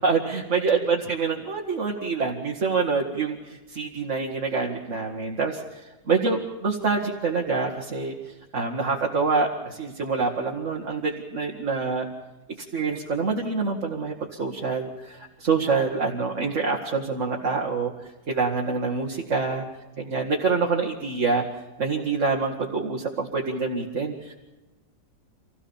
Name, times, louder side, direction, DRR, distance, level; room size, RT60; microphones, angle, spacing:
voice 1, 0.0-8.1 8.5-12.1 12.7-17.9 18.3-19.7 20.0-21.4 21.8-24.3, right 4 dB, 40° right, -1 dB, 2.2 m, -26 dB
26.5 x 17.5 x 7.2 m, 1.1 s
omnidirectional pair, 1.9 m